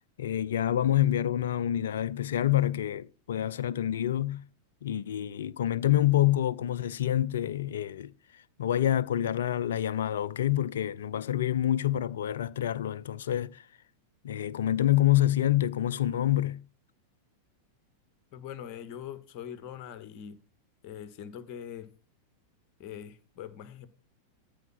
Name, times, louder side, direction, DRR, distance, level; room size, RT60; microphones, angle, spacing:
voice 1, 0.2-4.4 4.8-8.1 8.6-13.6 14.2-16.6, left 12 dB, 60° left, 0.5 m, -27 dB
voice 2, 18.3-20.4 20.8-21.9 22.8-23.9, left 9 dB, 40° left, 1.4 m, -42 dB
13.5 x 4.9 x 5.9 m
figure-of-eight pair, 90°, 0 cm